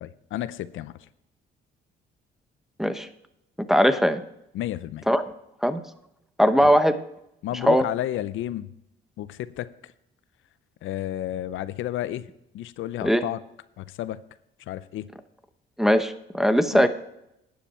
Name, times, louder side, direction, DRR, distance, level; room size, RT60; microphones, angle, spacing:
voice 1, 0.0-1.0 4.5-5.1 6.6-6.7 7.4-8.7 9.2-9.9 10.8-12.3 12.5-13.4 13.8-14.2 14.6-15.1 16.7-16.9, left 13 dB, 80° left, 16 dB, 0.6 m, -31 dB
voice 2, 3.6-4.2 5.1-5.2 5.6-5.8 6.4-7.0 7.6-7.8 13.0-13.2 15.8-16.9, equal, ahead, 11 dB, 0.9 m, -20 dB
12.0 x 9.6 x 4.3 m, 0.82 s
cardioid pair, 90°, 20 cm